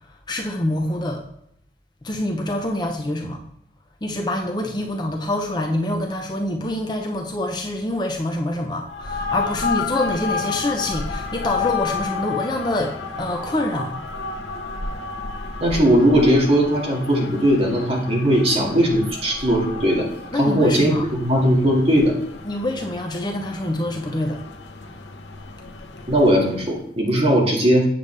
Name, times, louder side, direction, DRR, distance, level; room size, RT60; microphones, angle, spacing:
voice 1, 0.0-1.2 2.0-3.4 4.0-14.0 20.3-21.1 22.4-24.4, left 1 dB, 25° left, 3 dB, 0.7 m, -26 dB
sound 1, 8.8-26.8, left 5 dB, 90° left, 0.9 m, -31 dB
voice 2, 15.6-20.1 20.4-22.1 26.1-27.9, equal, 35° right, -2 dB, 2.1 m, -18 dB
8.3 x 6.9 x 3.3 m, 0.72 s
head